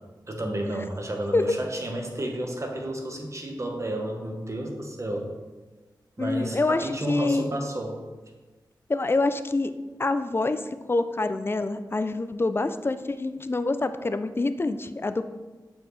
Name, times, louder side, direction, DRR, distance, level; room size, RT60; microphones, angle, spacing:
voice 1, 0.3-5.3 6.2-8.0, right 1 dB, 40° right, 2 dB, 1.1 m, -31 dB
voice 2, 6.2-7.6 8.9-9.7 10.0-10.6 10.9-15.2, left 2 dB, 30° left, 11 dB, 0.4 m, -26 dB
7.2 x 4.8 x 3.2 m, 1.3 s
wide cardioid pair, 65°, 8 cm